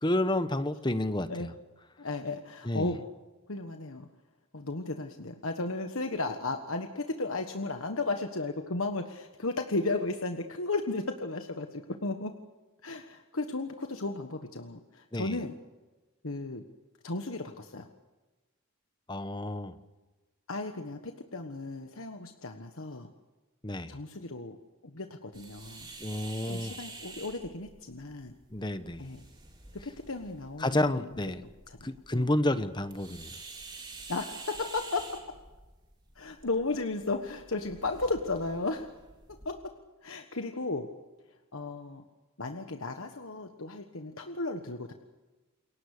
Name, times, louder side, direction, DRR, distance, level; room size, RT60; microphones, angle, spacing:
voice 1, 0.0-1.5 2.7-2.9 15.1-15.4 19.1-19.7 23.6-23.9 26.0-26.8 28.5-29.0 30.6-31.4 31.8-33.3, left 1 dB, 20° left, 11 dB, 1.1 m, -30 dB
voice 2, 2.0-3.1 3.5-4.1 4.5-12.3 12.8-15.6 16.2-16.6 17.0-17.9 20.5-23.1 23.9-24.6 24.8-25.9 26.5-28.3 29.0-29.2 29.7-31.1 31.4-32.3 34.1-35.4 36.1-38.9 39.3-39.7 40.0-40.9 41.5-42.0 42.4-44.9, left 3 dB, 70° left, 6 dB, 1.4 m, -35 dB
sound 1, 25.3-39.5, right 3 dB, 20° right, 4.2 m, -49 dB
28.5 x 23.0 x 6.7 m, 1.2 s
head